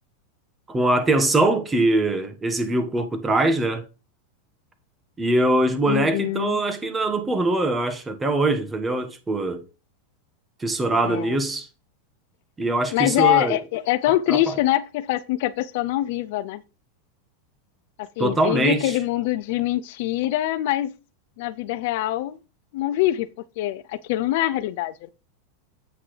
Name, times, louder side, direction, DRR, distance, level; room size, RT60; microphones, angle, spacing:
voice 1, 0.7-3.8 5.2-9.6 10.6-11.7 12.6-13.6 14.3-14.5 18.2-19.0, right 2 dB, 15° right, 1.3 m, -22 dB
voice 2, 5.9-6.6 11.0-11.3 12.9-16.6 18.0-20.9 21.4-22.4 22.7-23.3 23.6-25.1, left 14 dB, 65° left, 0.5 m, -24 dB
8.4 x 5.7 x 3.3 m
hypercardioid pair, 105°, 0 cm